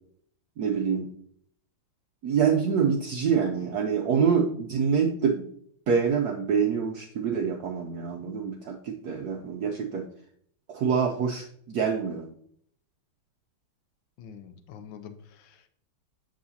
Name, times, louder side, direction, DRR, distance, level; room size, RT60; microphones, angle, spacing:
voice 1, 0.6-1.1 2.2-5.5 5.9-10.1 10.7-12.3, right 6 dB, 70° right, 2 dB, 0.9 m, -26 dB
voice 2, 14.2-15.7, left 7 dB, 75° left, 8 dB, 1.3 m, -46 dB
7.5 x 6.2 x 2.8 m, 0.65 s
omnidirectional pair, 2.3 m